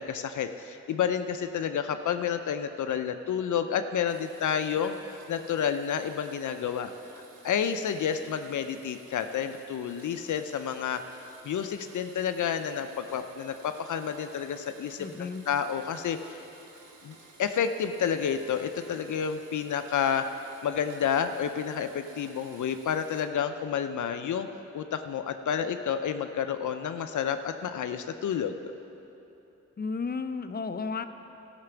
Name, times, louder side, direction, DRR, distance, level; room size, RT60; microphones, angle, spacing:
voice 1, 0.0-16.5 17.0-24.5 24.7-28.7, left 8 dB, 75° left, 8 dB, 0.5 m, -30 dB
Domestic sounds home sounds, 4.1-23.2, right 3 dB, 80° right, 1.3 m, -54 dB
voice 2, 15.0-15.4 29.8-31.1, left 4 dB, 30° left, 9 dB, 0.7 m, -33 dB
14.0 x 5.9 x 6.9 m, 2.9 s
cardioid pair, 45°, 30 cm